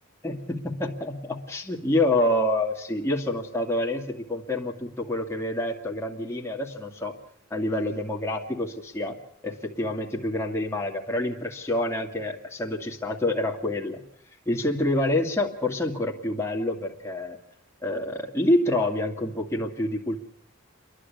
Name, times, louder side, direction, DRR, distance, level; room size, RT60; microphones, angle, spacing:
voice 1, 0.2-7.2 7.5-9.2 9.4-14.0 14.5-17.4 17.8-20.2, left 1 dB, 15° left, 0 dB, 2.3 m, -27 dB
29.5 x 11.5 x 8.6 m, 0.72 s
head